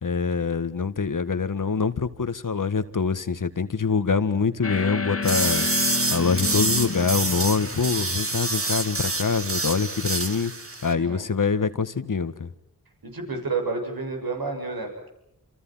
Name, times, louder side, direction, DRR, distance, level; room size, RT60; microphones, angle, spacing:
voice 1, 0.0-5.7 6.1-10.5 10.8-12.5, left 5 dB, 60° left, 11 dB, 1.8 m, -25 dB
sound 1, 4.6-8.9, left 4 dB, 40° left, 2.5 m, -31 dB
sound 2, 5.2-10.9, right 2 dB, 40° right, 3.0 m, -27 dB
voice 2, 13.0-15.1, right 4 dB, 75° right, 3 dB, 7.2 m, -30 dB
28.5 x 28.5 x 5.8 m, 0.79 s
cardioid pair, 50°, 36 cm